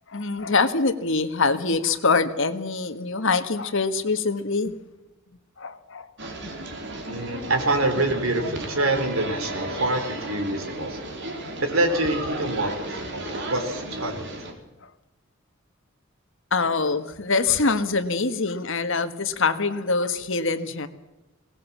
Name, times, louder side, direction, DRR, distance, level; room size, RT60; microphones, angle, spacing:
voice 1, 0.0-4.8 5.6-6.3 6.5-6.6 16.5-20.9, left 4 dB, 65° left, 9 dB, 1.6 m, -24 dB
sound 1, 6.2-14.5, right 2 dB, 60° right, 3.8 m, -34 dB
voice 2, 7.1-11.0 11.6-14.3, right 2 dB, 80° right, 7 dB, 3.7 m, -26 dB
21.5 x 18.5 x 7.3 m, 1.0 s
head